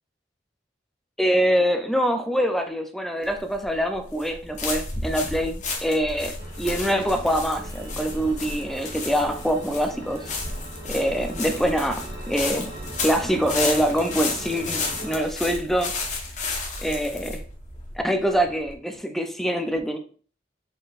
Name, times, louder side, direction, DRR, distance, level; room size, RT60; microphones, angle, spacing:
voice 1, 1.2-6.3 6.6-10.3 10.9-12.7 13.0-15.9 16.8-17.4 18.0-20.0, equal, ahead, 6 dB, 0.4 m, -24 dB
sound 1, 3.2-18.7, left 3 dB, 45° left, 1.0 m, -33 dB
sound 2, 6.4-15.3, right 1 dB, 60° right, 1.8 m, -40 dB
5.1 x 3.8 x 2.4 m, 0.42 s
head